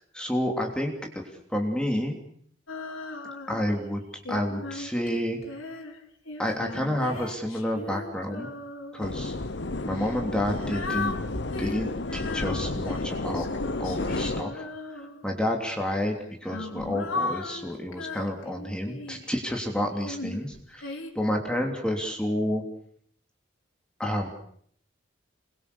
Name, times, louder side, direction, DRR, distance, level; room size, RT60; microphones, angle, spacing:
voice 1, 0.1-1.2 1.5-2.2 3.5-4.0 4.3-5.4 6.4-8.5 8.9-9.3 9.8-11.1 11.6-13.4 13.8-14.6 14.9-22.6 24.0-24.3, left 1 dB, 5° left, 1 dB, 3.1 m, -29 dB
Female singing, 2.7-3.7 4.3-9.1 9.9-15.4 16.2-19.3 20.0-21.1, left 3 dB, 85° left, 3.7 m, -37 dB
sound 1, 9.0-14.4, left 2 dB, 60° left, 0.9 m, -31 dB
27.0 x 22.5 x 7.0 m, 0.64 s
head